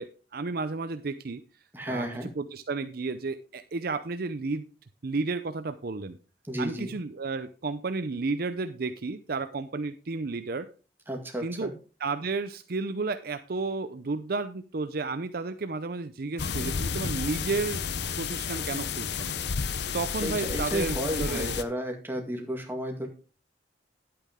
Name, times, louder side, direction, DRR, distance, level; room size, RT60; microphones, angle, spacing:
voice 1, 0.0-1.4 1.9-2.1 2.4-4.6 5.0-6.2 6.6-10.7 11.4-11.7 12.0-17.9 18.2-19.4 19.9-21.6, right 3 dB, 55° right, 10 dB, 0.6 m, -32 dB
voice 2, 1.7-2.3 6.4-6.9 11.1-11.7 20.2-23.1, equal, 10° right, 2 dB, 2.1 m, -32 dB
sound 1, 16.4-21.6, left 6 dB, 65° left, 0.7 m, -31 dB
10.5 x 8.7 x 3.6 m, 0.34 s
head